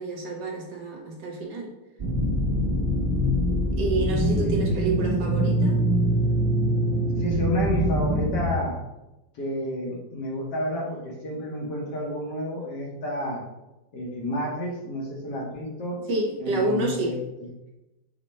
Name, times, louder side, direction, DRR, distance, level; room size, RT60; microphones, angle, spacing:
voice 1, 0.0-1.7 3.7-5.8 16.1-17.1, right 2 dB, 65° right, -1 dB, 1.4 m, -28 dB
sound 1, 2.0-8.5, equal, 45° right, 0.8 m, -24 dB
voice 2, 7.2-8.8 9.3-13.4 13.9-16.0 16.4-17.5, equal, 60° left, -2 dB, 1.4 m, -30 dB
5.1 x 2.2 x 4.1 m, 0.96 s
omnidirectional pair, 2.2 m